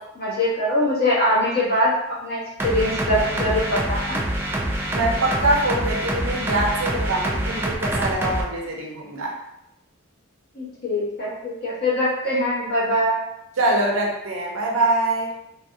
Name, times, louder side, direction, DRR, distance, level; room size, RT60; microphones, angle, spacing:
voice 1, 0.1-1.9 2.2-4.2 10.5-13.2, left 1 dB, 50° left, -8 dB, 1.3 m, -22 dB
sound 1, 2.6-8.4, right 1 dB, 10° right, 0.4 m, -25 dB
voice 2, 4.9-9.3 13.6-15.3, right 2 dB, 75° right, -1 dB, 0.7 m, -23 dB
3.4 x 2.3 x 2.7 m, 0.84 s
head